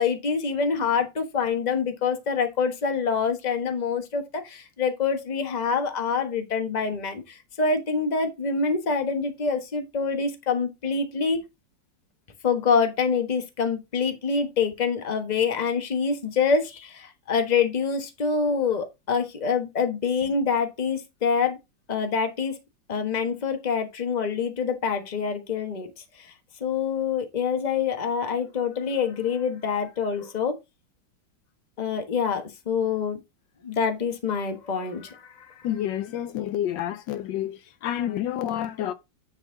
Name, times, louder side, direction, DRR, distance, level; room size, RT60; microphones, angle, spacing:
voice 1, 0.0-11.4 12.4-21.6 21.9-22.6 22.9-25.9 26.2-26.3 26.6-30.6 31.8-33.2 33.6-35.5, left 5 dB, 25° left, 1.1 m, -26 dB
voice 2, 35.6-38.9, left 11 dB, 80° left, 1.3 m, -29 dB
9.9 x 4.2 x 3.8 m
omnidirectional pair, 2.0 m